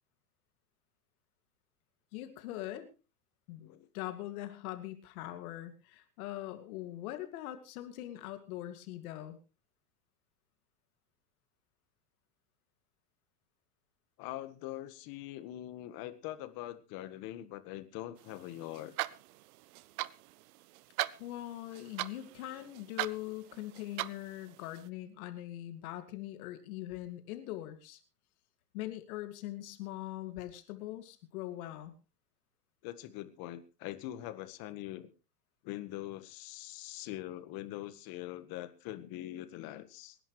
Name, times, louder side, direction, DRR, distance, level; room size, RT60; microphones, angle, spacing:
voice 1, 2.1-2.9 3.5-3.7 3.9-9.4 21.2-28.0 28.7-31.9, left 14 dB, 65° left, 8 dB, 2.4 m, -42 dB
voice 2, 14.2-18.9 32.8-35.1 35.6-40.2, left 14 dB, 50° left, 12 dB, 1.8 m, -43 dB
sound 1, 18.2-24.9, right 18 dB, 60° right, 0.9 m, -41 dB
26.0 x 11.0 x 3.2 m, 0.32 s
hypercardioid pair, 110°, 47 cm